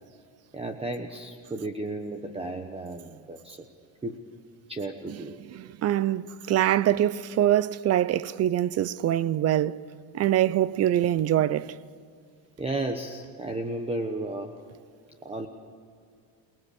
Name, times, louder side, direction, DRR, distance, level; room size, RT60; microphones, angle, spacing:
voice 1, 0.5-3.6 4.0-4.1 4.7-5.3 12.6-14.5 15.2-15.5, right 2 dB, 10° right, 1.1 m, -33 dB
voice 2, 5.1-9.8 10.1-11.8, right 12 dB, 35° right, 0.5 m, -24 dB
28.0 x 19.5 x 7.0 m
cardioid pair, 135°, 47 cm